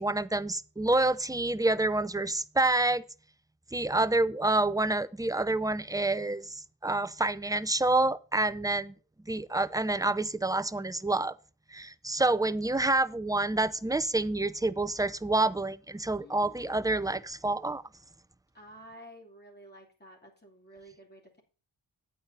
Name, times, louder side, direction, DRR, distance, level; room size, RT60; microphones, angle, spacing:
voice 1, 0.0-3.0 3.7-8.9 9.3-11.3 11.7-17.8, right 2 dB, 10° right, 0.5 m, -28 dB
voice 2, 16.2-17.0 18.5-21.4, equal, 20° left, 2.8 m, -52 dB
9.0 x 8.7 x 4.2 m
wide cardioid pair, 105°, 49 cm